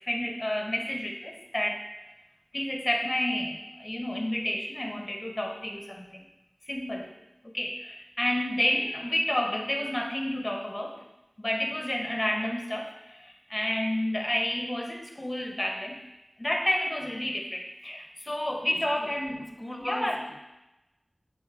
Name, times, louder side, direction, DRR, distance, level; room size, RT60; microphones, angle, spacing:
voice 1, 0.1-1.8 2.5-6.2 6.7-7.1 7.4-11.1 11.4-16.0 16.4-19.5 19.8-20.2, left 1 dB, 35° left, 2 dB, 1.3 m, -30 dB
voice 2, 18.7-20.4, left 1 dB, 10° left, 3 dB, 0.9 m, -40 dB
7.9 x 3.7 x 5.0 m, 0.97 s
wide cardioid pair, 40°, 0 cm